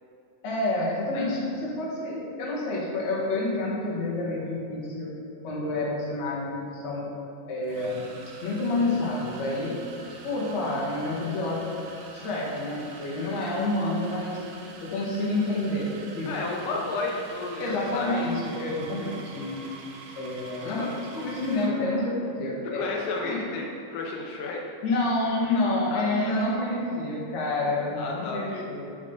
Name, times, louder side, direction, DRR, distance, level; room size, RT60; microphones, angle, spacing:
voice 1, 0.4-5.1 5.4-7.1 7.5-8.1 8.4-9.8 10.2-11.8 12.1-14.4 14.8-15.9 16.1-16.3 17.6-19.6 20.2-20.9 21.1-22.8 23.2-23.4 24.8-28.9, left 2 dB, 55° left, -5 dB, 3.0 m, -28 dB
sound 1, 6.4-6.5 7.6-21.8, right 4 dB, 70° right, 2.3 m, -46 dB
voice 2, 16.3-18.1 20.6-21.0 22.7-24.6 25.9-26.3 28.0-28.7, left 3 dB, 85° left, -1 dB, 2.5 m, -32 dB
12.0 x 6.2 x 4.0 m, 2.7 s
omnidirectional pair, 3.8 m